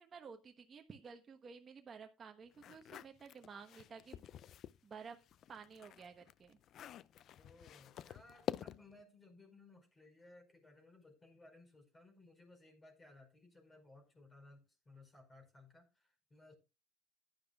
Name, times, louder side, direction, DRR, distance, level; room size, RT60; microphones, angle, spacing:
voice 1, 0.0-4.2 4.8-5.2 5.5-6.6, right 5 dB, 35° right, 1.1 m, -53 dB
sound 1, 2.5-4.8 5.2-9.0, left 10 dB, 55° left, 0.4 m, -48 dB
voice 2, 7.4-16.5, left 2 dB, 25° left, 5.0 m, -61 dB
14.5 x 10.0 x 2.3 m
supercardioid pair, 85°, 0 cm